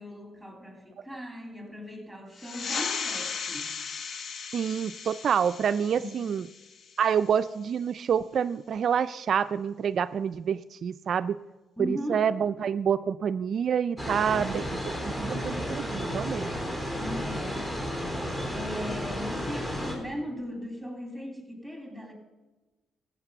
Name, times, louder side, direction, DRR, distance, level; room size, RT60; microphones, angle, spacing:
voice 1, 0.0-3.7 6.0-6.1 11.8-12.3 16.9-17.7 18.5-22.1, equal, ahead, 4 dB, 3.3 m, -38 dB
sound 1, 2.3-7.5, left 5 dB, 50° left, 0.8 m, -36 dB
voice 2, 4.5-6.4 7.0-11.4 11.8-16.5, right 7 dB, 55° right, 11 dB, 0.3 m, -27 dB
sound 2, 14.0-19.9, equal, 25° left, 3.8 m, -32 dB
14.0 x 8.0 x 6.8 m, 1.2 s
cardioid pair, 90°, 0 cm